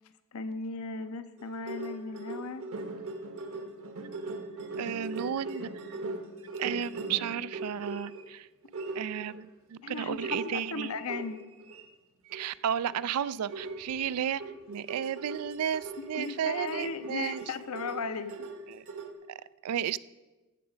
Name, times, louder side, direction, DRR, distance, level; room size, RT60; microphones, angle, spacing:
voice 1, 0.3-2.6 4.8-4.9 9.8-11.4 16.2-18.5, left 4 dB, 70° left, 11 dB, 0.7 m, -36 dB
sound 1, 1.4-8.3 8.7-9.4 10.0-11.8 12.2-12.5 12.8-13.0 13.5-19.1, right 2 dB, 65° right, 1.1 m, -40 dB
voice 2, 4.8-5.7 6.6-8.5 8.9-10.9 12.3-14.4 14.7-17.4 18.7-18.8 19.6-20.0, right 9 dB, 90° right, 18 dB, 0.4 m, -33 dB
13.5 x 7.1 x 5.1 m, 1.2 s
head